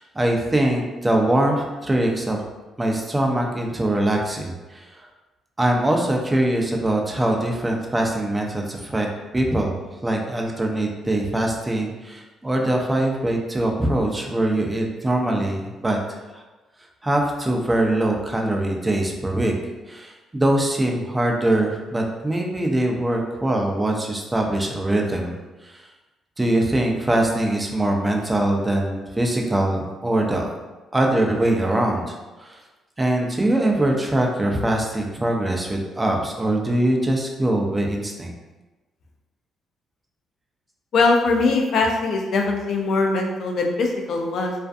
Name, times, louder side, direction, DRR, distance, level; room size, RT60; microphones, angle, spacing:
voice 1, 0.0-2.4 2.8-5.1 5.6-9.1 9.3-16.0 17.0-19.5 19.9-25.3 25.6-25.8 26.4-30.5 30.9-32.1 32.4-32.6 33.0-38.3, right 1 dB, 15° right, 1 dB, 0.4 m, -22 dB
voice 2, 40.9-44.5, left 3 dB, 65° left, 1 dB, 0.4 m, -21 dB
2.4 x 2.4 x 2.4 m, 1.2 s
cardioid pair, 90°, 0 cm